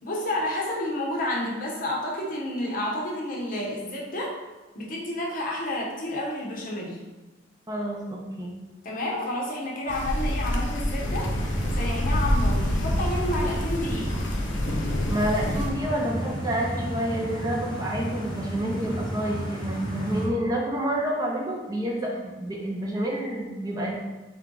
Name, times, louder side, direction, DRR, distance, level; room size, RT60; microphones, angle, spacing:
voice 1, 0.0-4.4 4.7-7.0 8.8-11.3 11.7-14.2, left 1 dB, 50° left, -3 dB, 0.9 m, -30 dB
voice 2, 7.7-8.5 15.1-24.0, right 1 dB, 20° right, -1 dB, 0.5 m, -29 dB
sound 1, 9.9-15.7, left 1 dB, 80° left, 0.6 m, -27 dB
sound 2, 11.0-20.3, equal, 25° left, 1.1 m, -32 dB
3.5 x 3.4 x 3.7 m, 1.2 s
head